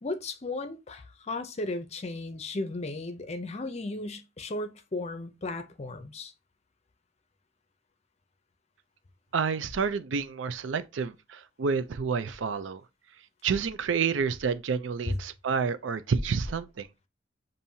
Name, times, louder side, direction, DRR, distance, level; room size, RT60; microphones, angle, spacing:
voice 1, 0.0-6.3 15.1-15.2, left 2 dB, 35° left, 0.5 m, -35 dB
voice 2, 9.3-12.8 13.4-16.9, right 5 dB, 75° right, 0.4 m, -29 dB
7.0 x 2.6 x 2.7 m
head